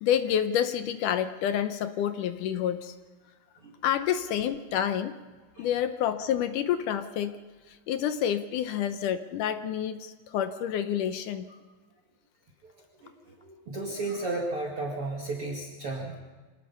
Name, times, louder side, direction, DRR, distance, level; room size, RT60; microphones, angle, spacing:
voice 1, 0.0-2.9 3.8-5.2 5.6-7.4 7.7-11.5, left 9 dB, 75° left, 10 dB, 2.0 m, -28 dB
voice 2, 13.0-16.2, right 2 dB, 40° right, -1 dB, 2.7 m, -34 dB
27.0 x 18.0 x 5.5 m, 1.3 s
omnidirectional pair, 4.4 m